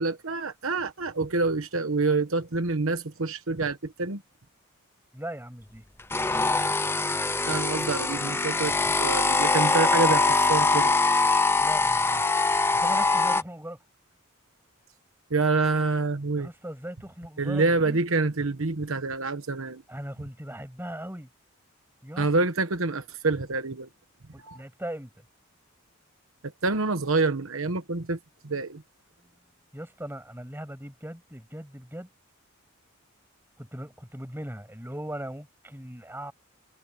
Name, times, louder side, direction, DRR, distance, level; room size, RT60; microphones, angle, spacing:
voice 1, 0.0-4.2 7.5-10.9 15.3-16.5 17.4-19.8 22.2-23.9 24.4-24.6 26.6-28.2 28.4-28.8, right 3 dB, 70° right, 1.2 m, -27 dB
voice 2, 5.1-5.8 9.7-9.9 11.6-12.3 12.7-13.8 16.3-18.0 19.9-21.3 22.0-22.3 24.3-25.2 29.2-29.3 29.7-32.1 33.6-36.3, right 1 dB, 10° right, 7.9 m, -39 dB
sound 1, 6.1-13.4, left 3 dB, 10° left, 0.6 m, -23 dB
head